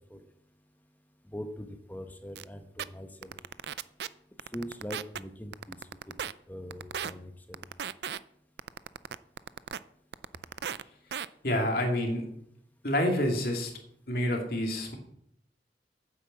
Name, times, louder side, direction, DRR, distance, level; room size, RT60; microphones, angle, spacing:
voice 1, 1.3-3.4 4.5-5.8 6.1-6.2 6.5-7.6, equal, 10° left, 7 dB, 0.9 m, -42 dB
sound 1, 2.4-2.5 2.8-2.9 3.2-4.1 4.4-5.2 5.5-6.3 6.7-7.1 7.5-8.2 8.6-9.8 10.1-10.8 11.1-11.3, right 8 dB, 70° right, 0.4 m, -35 dB
voice 2, 11.4-12.2 12.8-13.7 14.1-15.0, left 1 dB, 55° left, 2 dB, 2.5 m, -28 dB
9.3 x 8.2 x 7.4 m, 0.73 s
head